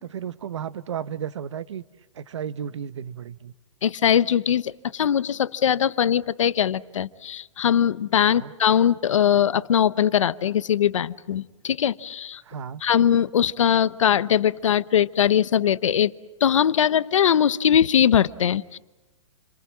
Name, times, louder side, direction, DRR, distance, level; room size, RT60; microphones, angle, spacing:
voice 1, 0.0-1.8 2.1-3.5 8.3-8.5 12.4-12.8, right 8 dB, 70° right, 16 dB, 1.1 m, -33 dB
voice 2, 3.8-12.4 12.8-16.1 16.4-18.8, left 9 dB, 80° left, 16 dB, 1.0 m, -21 dB
29.5 x 23.0 x 7.5 m, 1.1 s
hypercardioid pair, 180°, 16 cm